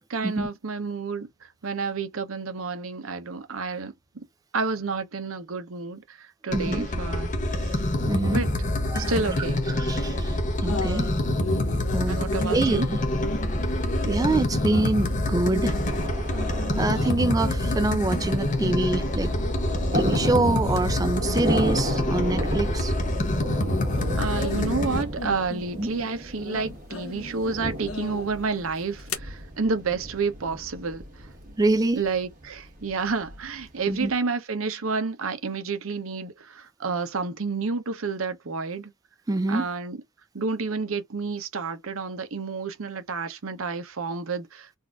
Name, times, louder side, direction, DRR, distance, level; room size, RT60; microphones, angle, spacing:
voice 1, 0.1-4.2 4.5-7.8 8.3-8.7 9.0-9.6 12.1-12.9 24.2-31.3 31.9-38.9 39.5-40.0 40.3-44.8, right 4 dB, 75° right, 0.8 m, -30 dB
sound 1, 6.5-25.0, left 1 dB, 40° left, 0.7 m, -26 dB
voice 2, 6.5-6.8 8.1-8.4 8.9-9.1 9.7-11.1 11.9-12.2 12.5-13.0 14.0-15.8 16.8-19.3 19.9-22.9 25.8-25.9 31.6-32.0 33.9-34.1 39.3-39.7, right 2 dB, 15° right, 0.4 m, -25 dB
sound 2, 10.7-22.9 23.2-29.2, left 2 dB, 85° left, 1.0 m, -37 dB
Thunder, 15.2-34.1, equal, 40° right, 1.6 m, -35 dB
3.9 x 2.5 x 2.3 m
head